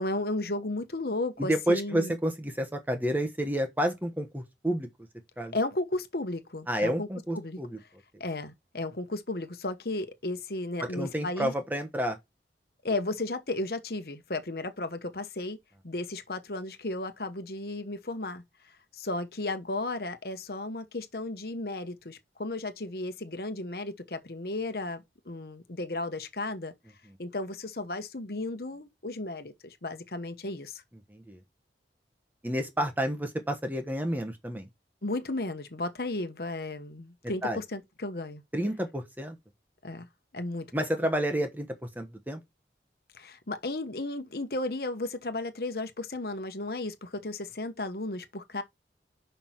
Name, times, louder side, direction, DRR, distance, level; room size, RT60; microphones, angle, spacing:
voice 1, 0.0-2.1 5.5-7.1 7.3-7.6 8.2-11.5 12.8-15.6 15.8-18.4 18.9-26.7 27.2-30.8 35.0-38.4 39.8-40.1 40.3-40.7 43.1-48.6, left 2 dB, 60° left, 1.1 m, -34 dB
voice 2, 1.4-4.9 5.4-5.6 6.7-7.8 10.8-12.2 31.1-31.4 32.4-34.7 37.4-37.6 38.5-39.4 40.7-42.4, equal, 10° right, 1.1 m, -30 dB
6.1 x 5.6 x 4.5 m
head